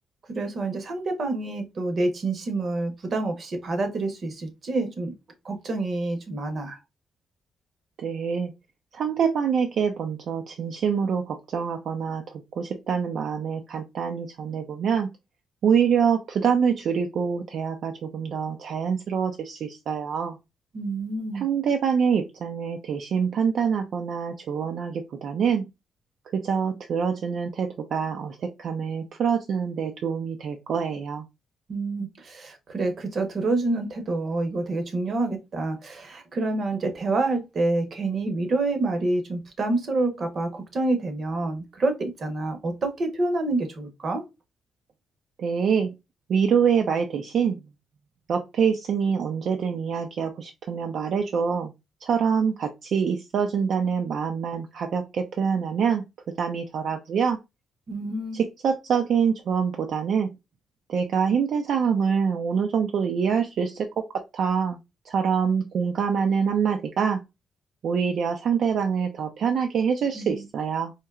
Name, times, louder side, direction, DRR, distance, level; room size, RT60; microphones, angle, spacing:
voice 1, 0.3-5.1 5.4-6.8 20.7-21.5 31.7-44.2 57.9-58.4 70.1-70.4, right 2 dB, 40° right, 0.8 m, -27 dB
voice 2, 8.0-8.5 8.9-15.1 15.6-20.4 21.3-25.7 26.3-31.2 45.4-45.9 46.3-47.6 48.3-51.7 52.0-56.0 56.4-57.4 58.3-60.3 60.9-63.9 64.3-64.8 65.1-67.2 67.8-70.9, right 6 dB, 60° right, 0.4 m, -25 dB
4.4 x 2.8 x 2.3 m
wide cardioid pair, 170°, 0 cm